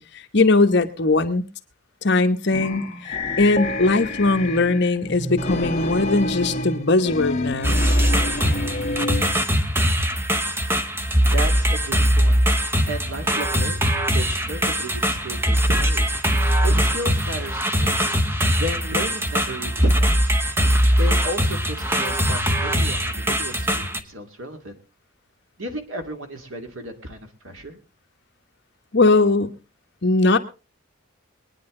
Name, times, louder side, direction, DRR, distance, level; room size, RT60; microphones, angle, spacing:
voice 1, 0.0-1.4 2.0-7.9 28.9-29.5 30.0-30.4, left 3 dB, 55° left, 7 dB, 1.1 m, -20 dB
sound 1, 2.5-9.4, left 2 dB, 30° left, 1.6 m, -29 dB
sound 2, 7.6-24.0, equal, 10° right, 0.9 m, -21 dB
voice 2, 11.2-12.4 12.9-16.1 16.6-17.9 18.6-20.3 21.0-24.7 25.6-27.8, equal, 75° right, 5 dB, 2.4 m, -33 dB
22.5 x 9.8 x 3.8 m, 0.32 s
head